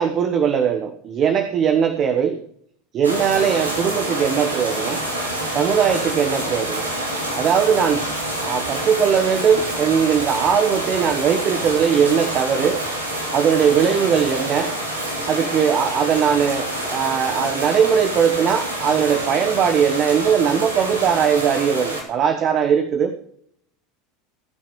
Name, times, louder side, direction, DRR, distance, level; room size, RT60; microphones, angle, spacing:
voice 1, 0.0-2.4 2.9-5.0 5.5-6.9 7.3-12.8 13.3-14.7 15.3-23.1, right 7 dB, 40° right, 8 dB, 1.1 m, -19 dB
sound 1, 3.0-22.0, right 1 dB, 90° right, 3.2 m, -27 dB
20.5 x 9.1 x 3.2 m, 0.68 s
figure-of-eight pair, 75°, 0 cm